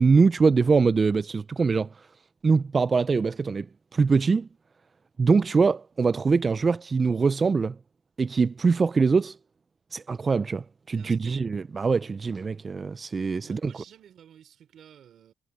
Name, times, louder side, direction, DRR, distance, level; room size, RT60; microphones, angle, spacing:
voice 1, 0.0-2.1 2.4-3.7 3.9-4.5 5.2-7.8 8.2-9.4 9.9-13.7, right 4 dB, 35° right, 0.4 m, -23 dB
voice 2, 10.9-11.5 13.4-15.3, right 9 dB, 65° right, 4.9 m, -52 dB
cardioid pair, 90°, 0 cm